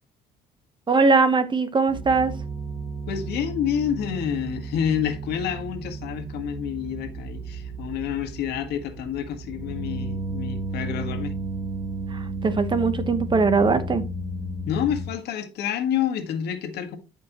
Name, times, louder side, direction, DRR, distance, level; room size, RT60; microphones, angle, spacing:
voice 1, 0.9-2.3 12.1-14.0, right 4 dB, 30° right, 1.1 m, -21 dB
sound 1, 1.9-15.1, right 2 dB, ahead, 1.8 m, -33 dB
voice 2, 3.1-11.3 14.7-17.0, left 9 dB, 75° left, 1.6 m, -28 dB
12.5 x 5.5 x 3.0 m
cardioid pair, 110°, 17 cm